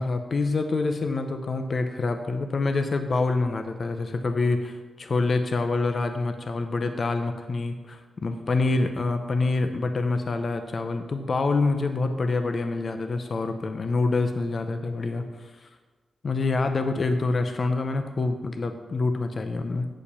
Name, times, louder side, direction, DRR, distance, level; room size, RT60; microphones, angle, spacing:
voice 1, 0.0-15.7 16.2-19.9, left 3 dB, 40° left, 7 dB, 0.5 m, -26 dB
8.5 x 5.1 x 6.8 m, 1.3 s
wide cardioid pair, 155°, 0 cm